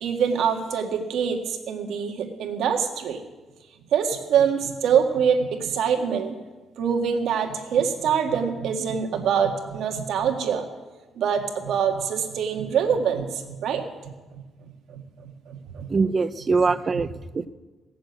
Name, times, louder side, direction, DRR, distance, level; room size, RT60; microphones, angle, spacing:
voice 1, 0.0-3.2 3.9-6.4 6.8-10.7 11.2-14.4 14.9-15.9, right 7 dB, 75° right, 4 dB, 1.7 m, -25 dB
voice 2, 15.9-17.5, right 4 dB, 30° right, 14 dB, 0.6 m, -23 dB
18.0 x 7.0 x 8.1 m, 1.2 s
cardioid pair, 120°, 0 cm